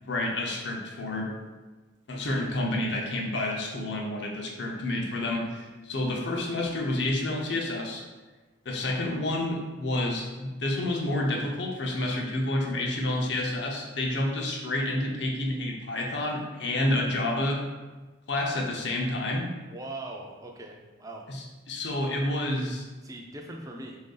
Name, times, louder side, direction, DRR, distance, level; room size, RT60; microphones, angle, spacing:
voice 1, 0.0-1.3 2.1-8.0 8.7-17.6 18.3-19.5 21.3-22.8, left 1 dB, 60° left, 0 dB, 0.6 m, -29 dB
voice 2, 19.7-21.3 23.0-24.0, right 2 dB, 15° right, 1 dB, 0.4 m, -40 dB
3.5 x 2.6 x 3.8 m, 1.3 s
head